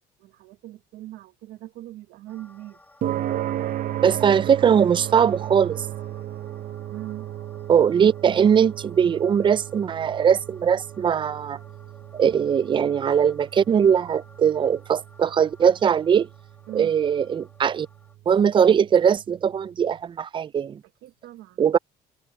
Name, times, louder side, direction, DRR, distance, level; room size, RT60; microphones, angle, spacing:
voice 1, 0.2-2.8 6.9-7.3 16.7-16.9 21.0-21.8, right 15 dB, 85° right, 1.1 m, -40 dB
sound 1, 2.3-18.2, left 2 dB, 10° left, 6.3 m, -55 dB
sound 2, 3.0-19.5, right 12 dB, 55° right, 0.9 m, -35 dB
voice 2, 4.0-5.8 7.7-11.6 12.1-16.3 16.7-17.9 18.3-20.8 21.6-21.8, right 7 dB, 30° right, 0.4 m, -20 dB
open air
cardioid pair, 110°, 17 cm